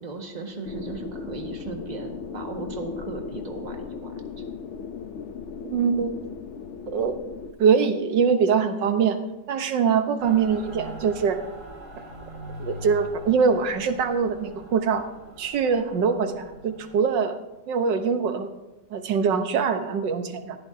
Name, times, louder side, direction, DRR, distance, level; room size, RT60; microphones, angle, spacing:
voice 1, 0.0-4.1, right 3 dB, 25° right, 2 dB, 1.7 m, -36 dB
sound 1, 0.6-7.5, left 5 dB, 55° left, 0.9 m, -37 dB
voice 2, 5.7-6.1 6.9-7.1 7.6-9.2 9.5-11.4 12.6-15.0 15.4-17.4 17.7-18.5 18.9-20.6, right 6 dB, 90° right, 8 dB, 1.7 m, -23 dB
Mechanical fan, 10.2-17.0, equal, 65° right, 3.6 m, -42 dB
20.0 x 15.0 x 2.8 m, 1.0 s
omnidirectional pair, 1.9 m